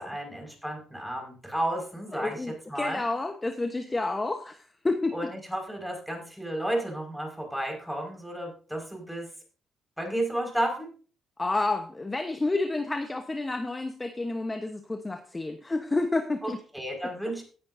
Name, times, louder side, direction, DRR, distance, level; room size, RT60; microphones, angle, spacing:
voice 1, 0.0-3.1 5.1-9.3 10.0-10.9 16.4-17.4, right 1 dB, ahead, 1 dB, 5.2 m, -32 dB
voice 2, 2.1-5.3 11.4-16.6, left 2 dB, 20° left, 6 dB, 1.1 m, -30 dB
17.5 x 9.9 x 2.7 m, 0.40 s
cardioid pair, 90°, 0 cm